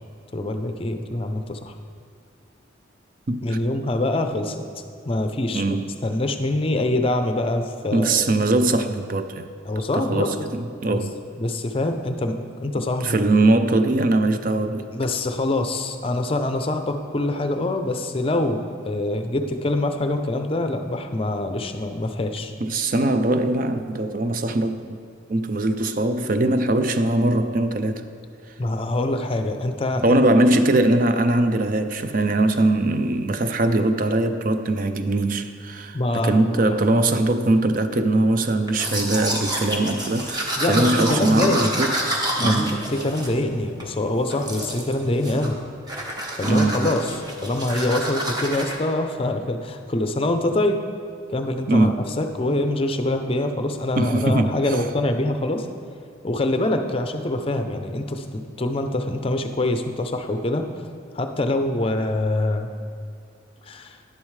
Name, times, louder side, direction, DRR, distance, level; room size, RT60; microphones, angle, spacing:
voice 1, 0.3-1.7 3.4-4.6 5.0-8.3 9.6-10.4 11.4-13.2 14.9-22.5 28.6-30.2 35.9-36.7 40.6-41.7 42.4-45.6 46.4-50.8 51.3-55.7 56.2-60.7 61.1-62.7 63.7-64.0, left 1 dB, 30° left, 6 dB, 0.5 m, -25 dB
voice 2, 3.3-3.6 5.5-5.9 7.9-9.5 9.9-11.1 13.0-14.9 22.6-24.8 25.3-28.0 30.0-41.9 42.4-42.9 46.4-46.9 51.7-52.0 54.0-54.6, right 2 dB, 45° right, 9 dB, 0.5 m, -21 dB
Domestic sounds home sounds, 38.7-43.9 44.3-44.9 45.2-45.6 45.9-48.8, right 1 dB, 20° right, 1.0 m, -28 dB
11.0 x 10.5 x 3.2 m, 2.3 s
head